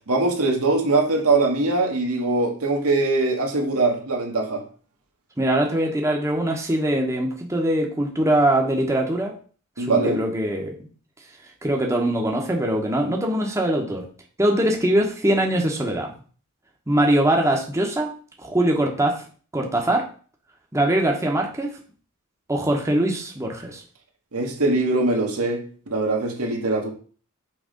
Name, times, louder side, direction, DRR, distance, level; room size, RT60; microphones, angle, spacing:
voice 1, 0.1-4.6 9.8-10.2 24.3-26.9, right 3 dB, 75° right, 1.5 m, -22 dB
voice 2, 5.4-9.3 9.8-10.7 11.6-14.1 14.4-16.1 16.9-18.1 18.4-19.2 19.5-20.0 20.7-21.7 22.5-23.8, right 1 dB, 15° right, 0.9 m, -22 dB
6.2 x 3.2 x 5.1 m
head